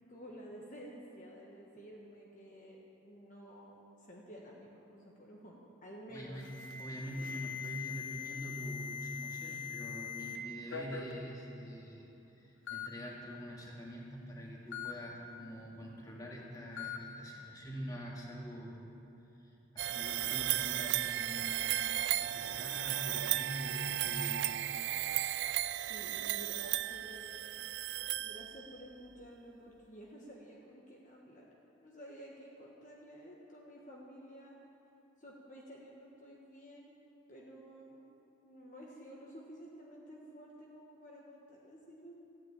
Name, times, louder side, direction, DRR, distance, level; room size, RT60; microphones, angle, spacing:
voice 1, 0.1-6.4 9.4-9.6 25.8-27.7 28.1-31.5 31.8-34.6 35.2-36.9 37.3-38.0 38.4-42.1, equal, 40° left, -3 dB, 1.5 m, -52 dB
voice 2, 6.1-18.9 19.4-21.8 22.2-24.4, equal, 20° left, -3 dB, 2.0 m, -45 dB
Alarm, 6.4-10.4 10.7-11.1 12.0-12.1 12.7-12.9 14.7-14.9 16.8-17.0, left 8 dB, 85° left, 1.2 m, -42 dB
sound 1, 19.8-28.8, right 13 dB, 60° right, 0.4 m, -35 dB
14.0 x 9.5 x 8.8 m, 2.9 s
head